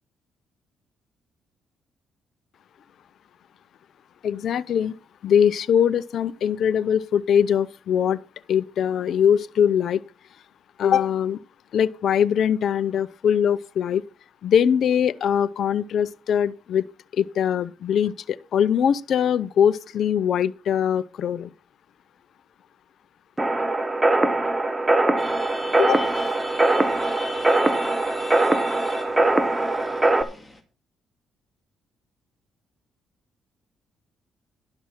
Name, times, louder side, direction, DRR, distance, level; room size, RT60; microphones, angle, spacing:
voice 1, 4.2-4.9 5.2-8.2 8.5-10.0 10.8-11.4 11.7-14.0 14.4-16.8 17.2-21.5 25.8-26.0, left 8 dB, 65° left, 0.6 m, -22 dB
sound 1, 23.4-30.2, right 2 dB, 15° right, 1.1 m, -21 dB
sound 2, 25.2-30.6, left 2 dB, 10° left, 2.1 m, -40 dB
11.5 x 6.0 x 5.7 m
cardioid pair, 90°, 0 cm